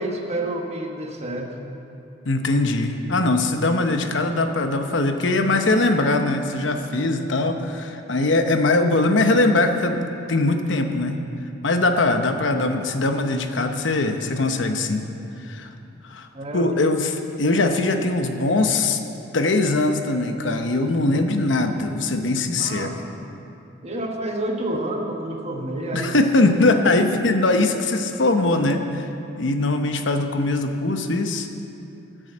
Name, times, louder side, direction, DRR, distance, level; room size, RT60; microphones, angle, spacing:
voice 1, 0.0-1.6 16.3-16.7 22.6-23.0 23.8-26.1, right 1 dB, 35° right, 1 dB, 1.3 m, -29 dB
voice 2, 2.2-11.2 11.6-15.0 15.4-15.7 16.0-16.3 16.5-19.0 19.3-22.9 25.9-29.1 29.4-31.5, left 2 dB, 80° left, 6 dB, 0.9 m, -21 dB
15.0 x 6.4 x 7.9 m, 2.8 s
head